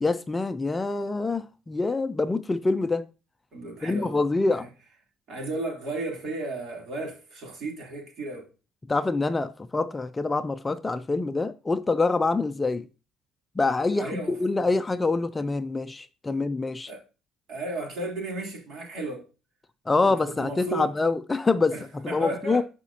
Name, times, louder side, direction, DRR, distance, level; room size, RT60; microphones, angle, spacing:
voice 1, 0.0-3.1 3.8-4.7 8.9-12.8 13.6-16.9 19.9-22.6, left 3 dB, 15° left, 0.4 m, -25 dB
voice 2, 3.5-4.7 5.3-8.5 14.0-14.4 16.3-16.4 16.9-17.0 17.5-19.3 20.0-20.9 21.7-22.6, right 2 dB, 60° right, 3.1 m, -34 dB
13.0 x 4.9 x 2.8 m
cardioid pair, 145°, 0 cm